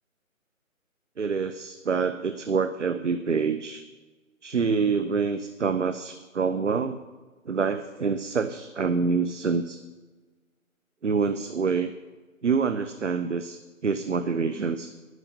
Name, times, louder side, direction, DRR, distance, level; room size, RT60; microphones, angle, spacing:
voice 1, 1.2-3.8 4.4-7.0 7.5-9.8 11.0-11.9 12.4-14.9, right 5 dB, 60° right, 11 dB, 0.8 m, -26 dB
11.0 x 11.0 x 7.1 m, 1.3 s
hypercardioid pair, 175°, 42 cm